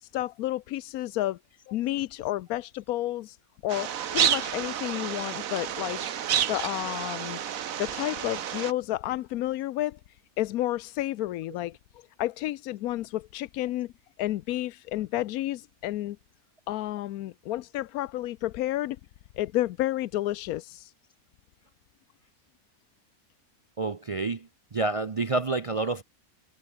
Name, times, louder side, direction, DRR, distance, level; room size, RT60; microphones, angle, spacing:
voice 1, 0.0-1.4 1.7-3.4 3.6-6.1 6.5-7.4 7.8-10.0 10.4-11.8 12.2-13.9 14.2-16.2 16.7-19.0 19.4-20.9, left 15 dB, 90° left, 1.1 m, -31 dB
sound 1, 3.7-8.7, right 9 dB, 70° right, 1.4 m, -30 dB
voice 2, 23.8-26.0, right 3 dB, 50° right, 0.4 m, -29 dB
omnidirectional pair, 1.5 m